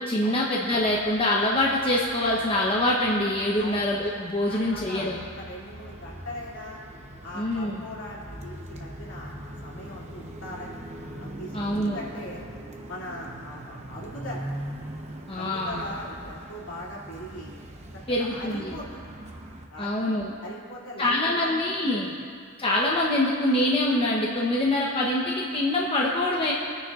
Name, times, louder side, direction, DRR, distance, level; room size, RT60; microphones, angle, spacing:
voice 1, 0.1-5.2 7.3-7.8 11.5-12.0 15.3-15.8 18.1-18.8 19.8-20.3 21.0-22.1 22.6-26.5, left 1 dB, 25° left, -3 dB, 0.9 m, -25 dB
sound 1, 0.7-19.7, right 1 dB, 30° right, 0.9 m, -42 dB
voice 2, 4.5-6.8 7.2-10.8 11.2-12.4 12.9-14.5 15.3-17.6 17.9-19.1 19.7-20.1 20.4-21.5 22.0-22.2, left 1 dB, 65° left, -5 dB, 2.6 m, -40 dB
26.0 x 9.8 x 2.5 m, 2.2 s
head